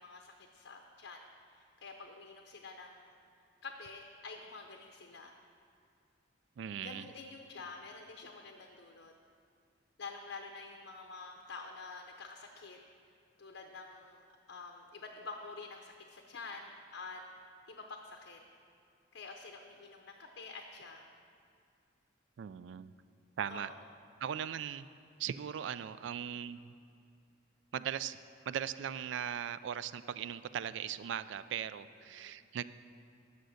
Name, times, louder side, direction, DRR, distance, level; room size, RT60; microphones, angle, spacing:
voice 1, 0.0-3.1 3.6-5.3 6.8-9.1 10.0-12.8 13.4-17.2 17.7-18.4 19.1-21.1 23.5-23.7 24.4-24.5 32.1-32.3, left 4 dB, 70° left, 3 dB, 0.7 m, -48 dB
voice 2, 6.6-7.1 22.4-22.9 23.4-23.7 24.2-24.9 25.2-26.7 27.7-28.2 28.5-32.6, right 9 dB, 65° right, 14 dB, 0.3 m, -39 dB
10.5 x 6.3 x 6.4 m, 2.3 s
head